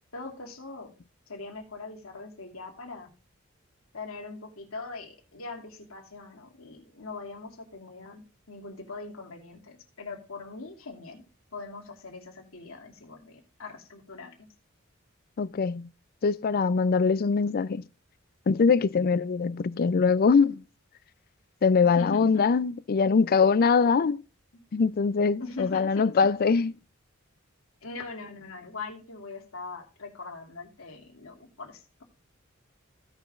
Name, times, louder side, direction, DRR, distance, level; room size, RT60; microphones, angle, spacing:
voice 1, 0.1-0.9 1.3-3.1 3.9-11.2 11.5-14.5 21.8-22.4 25.4-26.0 27.8-32.0, left 3 dB, 90° left, 2.4 m, -41 dB
voice 2, 15.4-15.9 16.2-17.8 18.5-20.6 21.6-24.2 24.7-26.7, left 5 dB, 45° left, 0.4 m, -23 dB
16.5 x 5.8 x 2.4 m
head